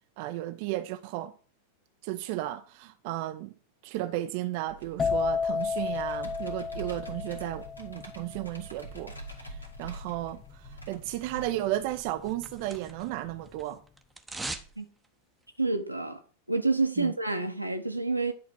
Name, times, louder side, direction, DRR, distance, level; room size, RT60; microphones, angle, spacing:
voice 1, 0.2-1.3 2.0-3.5 3.8-13.8 17.0-17.1, right 15 dB, 45° right, 0.6 m, -34 dB
Computer keyboard, 4.7-11.4, right 2 dB, 80° left, 2.4 m, -45 dB
sound 1, 5.0-12.6 12.8-13.3, left 5 dB, 20° left, 0.4 m, -33 dB
sound 2, 12.0-13.2 13.5-14.7 15.0-15.1, right 2 dB, 5° right, 1.0 m, -40 dB
voice 2, 15.6-16.2 16.5-18.3, right 3 dB, 90° right, 1.2 m, -28 dB
10.5 x 4.0 x 6.1 m
figure-of-eight pair, 90°, 0 cm